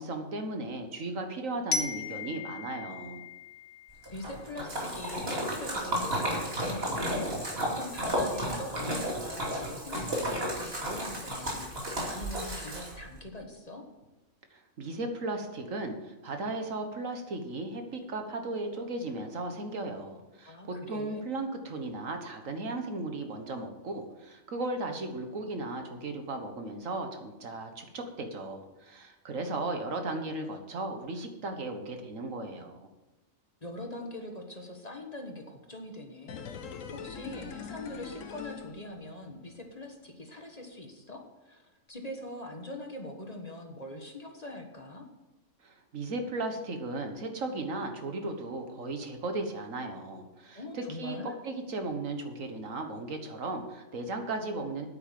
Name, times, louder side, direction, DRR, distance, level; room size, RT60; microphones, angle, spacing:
voice 1, 0.0-3.2 14.5-32.8 45.6-51.2 51.4-54.9, right 2 dB, 75° right, 5 dB, 1.8 m, -36 dB
Glockenspiel, 1.7-4.6, left 4 dB, 55° left, 1.1 m, -37 dB
Splash splatter, 4.0-13.2, equal, 50° right, 2.8 m, -33 dB
voice 2, 4.1-13.8 20.5-21.2 33.6-45.1 50.5-51.3, left 1 dB, 30° left, 3 dB, 1.5 m, -43 dB
sound 1, 36.3-39.4 39.7-39.8, left 6 dB, 75° left, 1.3 m, -43 dB
9.4 x 8.6 x 7.5 m, 1.1 s
omnidirectional pair, 1.4 m